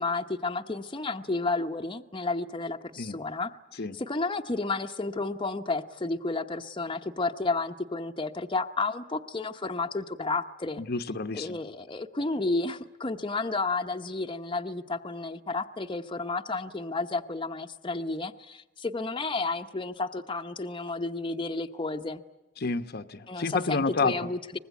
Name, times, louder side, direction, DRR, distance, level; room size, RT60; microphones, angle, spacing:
voice 1, 0.0-3.5 3.9-10.8 11.3-22.2 23.3-24.6, left 3 dB, 25° left, 5 dB, 0.9 m, -31 dB
voice 2, 10.8-11.6 22.6-24.1, left 4 dB, 55° left, 10 dB, 0.9 m, -29 dB
24.0 x 20.5 x 9.4 m, 1.1 s
head